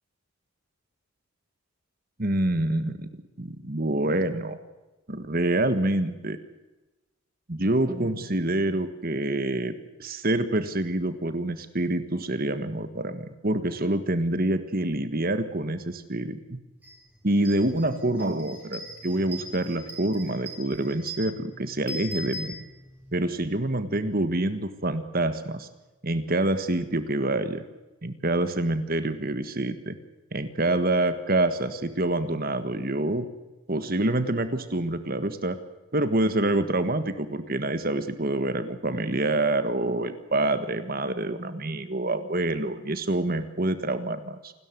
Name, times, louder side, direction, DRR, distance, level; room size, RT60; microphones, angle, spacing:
voice 1, 2.2-4.6 5.1-6.4 7.5-16.6 17.2-22.5 23.1-25.7 26.0-27.6 28.0-30.0 30.3-33.2 33.7-35.6 35.9-44.5, right 1 dB, 40° right, 11 dB, 1.5 m, -26 dB
sound 1, 16.8-17.0 17.3-23.1, right 1 dB, 5° right, 6.7 m, -41 dB
28.5 x 13.0 x 9.4 m, 1.1 s
head